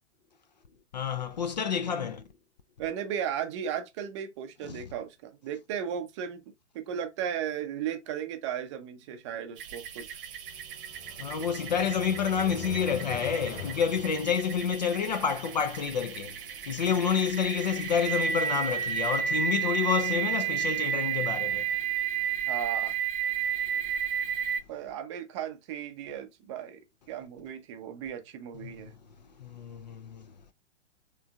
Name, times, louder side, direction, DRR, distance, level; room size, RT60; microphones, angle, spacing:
voice 1, 0.9-2.3 4.6-4.8 11.2-21.7 28.6-28.9 29.4-30.3, left 7 dB, 40° left, 0.4 m, -29 dB
voice 2, 2.8-6.4 6.7-10.2 22.5-23.0 24.7-26.8 27.1-28.9, right 9 dB, 25° right, 0.6 m, -35 dB
sound 1, 9.6-24.6, right 8 dB, 50° right, 0.9 m, -32 dB
sound 2, 10.4-14.9, left 7 dB, 70° left, 1.4 m, -43 dB
3.4 x 3.1 x 3.3 m
figure-of-eight pair, 115°, 36 cm